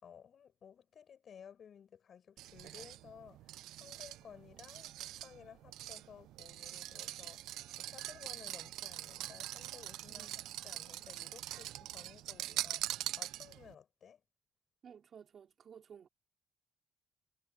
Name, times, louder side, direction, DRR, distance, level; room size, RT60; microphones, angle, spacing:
voice 1, 0.0-10.3 10.6-14.2, left 8 dB, 55° left, 6.1 m, -56 dB
sound 1, 2.4-13.7, right 14 dB, 90° right, 0.4 m, -43 dB
voice 2, 10.1-10.4 14.8-16.1, right 7 dB, 55° right, 4.7 m, -55 dB
cardioid pair, 90°, 0 cm